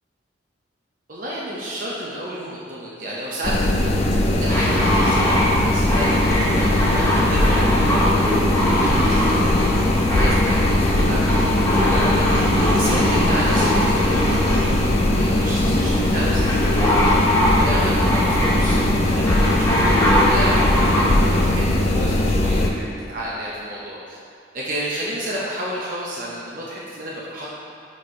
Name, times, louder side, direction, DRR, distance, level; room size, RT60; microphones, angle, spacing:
voice 1, 1.1-8.3 8.6-9.8 10.1-12.4 12.7-17.3 17.6-24.2 24.5-27.5, equal, 45° right, -6 dB, 0.7 m, -31 dB
sound 1, 3.4-22.7, left 1 dB, 35° left, 0.4 m, -20 dB
sound 2, 4.5-21.4, left 1 dB, 15° left, 1.1 m, -23 dB
4.7 x 4.2 x 4.7 m, 2.4 s
head